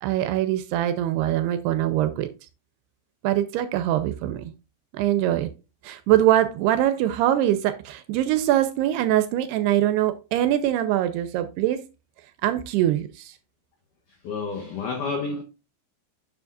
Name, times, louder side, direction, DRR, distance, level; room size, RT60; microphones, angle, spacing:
voice 1, 0.0-2.3 3.2-4.5 4.9-5.5 5.8-11.8 12.4-13.3, right 12 dB, 80° right, 2.5 m, -23 dB
voice 2, 14.2-15.4, left 4 dB, 80° left, 1.8 m, -29 dB
9.6 x 7.0 x 2.4 m
omnidirectional pair, 5.0 m